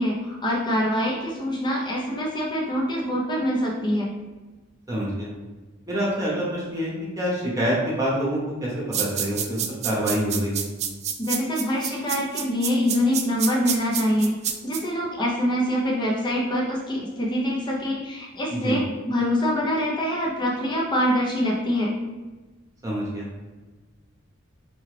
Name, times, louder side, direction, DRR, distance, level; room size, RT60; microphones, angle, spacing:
voice 1, 0.0-4.1 11.2-14.4 14.6-21.9, equal, 20° left, -3 dB, 0.6 m, -24 dB
voice 2, 4.9-5.3 5.9-8.7 9.0-10.7 18.5-18.8 22.8-23.3, equal, 15° right, -5 dB, 0.9 m, -26 dB
sound 1, 8.9-14.8, right 9 dB, 35° right, 0.3 m, -28 dB
4.6 x 2.3 x 3.2 m, 1.2 s
head